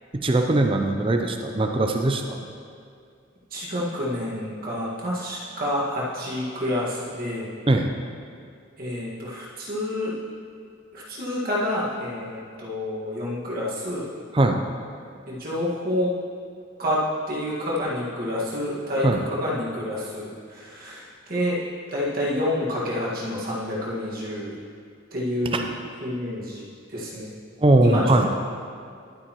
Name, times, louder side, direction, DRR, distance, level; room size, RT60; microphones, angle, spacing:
voice 1, 0.2-2.4 7.7-7.9 14.3-14.6 19.0-19.2 25.5-25.6 27.6-28.3, right 2 dB, 25° right, 4 dB, 0.5 m, -20 dB
voice 2, 3.5-7.5 8.8-10.1 10.9-14.0 15.3-16.1 16.8-17.0 17.3-21.6 21.9-24.5 25.1-25.7 26.0-27.3 27.8-28.1, left 1 dB, 45° right, -6 dB, 1.8 m, -28 dB
11.5 x 8.6 x 3.0 m, 2.3 s
head